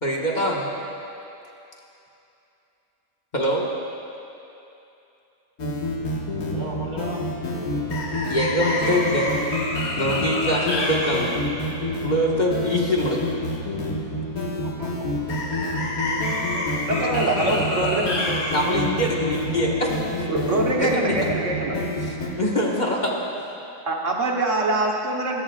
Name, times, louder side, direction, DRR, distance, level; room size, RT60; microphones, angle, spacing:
voice 1, 0.0-0.7 3.3-3.7 6.6-6.7 7.5-7.9 8.2-9.3 10.0-11.4 12.0-13.2 18.5-20.0 20.7-21.1 22.0-23.1, equal, 30° left, -3 dB, 1.6 m, -24 dB
sound 1, 5.6-22.3, left 1 dB, 85° left, 2.2 m, -26 dB
voice 2, 6.5-7.3 14.6-15.0 15.7-16.2 16.8-18.5 20.9-21.5, right 1 dB, 75° right, -1 dB, 2.3 m, -35 dB
voice 3, 17.0-18.0 20.3-21.8 23.9-25.4, right 2 dB, 60° right, -1 dB, 1.6 m, -24 dB
25.5 x 14.0 x 2.4 m, 2.8 s
omnidirectional pair, 1.5 m